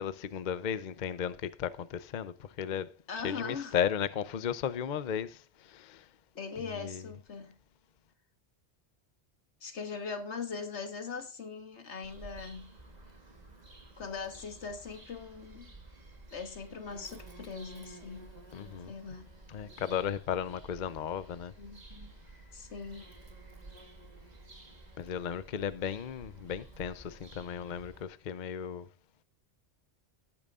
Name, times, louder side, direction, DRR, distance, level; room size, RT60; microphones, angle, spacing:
voice 1, 0.0-2.9 3.2-5.4 5.7-6.0 6.8-7.0 18.5-18.9 19.5-21.5 25.0-28.9, left 8 dB, 50° left, 0.7 m, -35 dB
voice 2, 3.1-3.8 6.3-7.6 9.6-12.7 14.0-15.7 16.3-18.3 18.9-19.3 21.6-22.1 22.5-23.1, left 5 dB, 85° left, 1.7 m, -41 dB
Bird vocalization bird call bird song, 12.0-28.0, right 2 dB, 40° right, 2.0 m, -52 dB
17.0 x 8.8 x 2.5 m
omnidirectional pair, 1.1 m